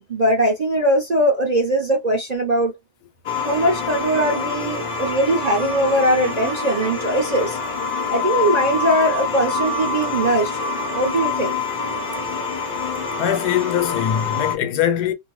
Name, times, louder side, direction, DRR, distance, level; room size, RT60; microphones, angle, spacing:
voice 1, 0.0-2.7 3.4-7.6 8.1-10.6 10.9-11.6, right 1 dB, 40° right, 0.6 m, -20 dB
sound 1, 3.2-14.5, left 4 dB, 50° left, 0.6 m, -26 dB
voice 2, 13.2-15.1, left 10 dB, 80° left, 1.2 m, -21 dB
2.7 x 2.1 x 3.0 m
omnidirectional pair, 1.7 m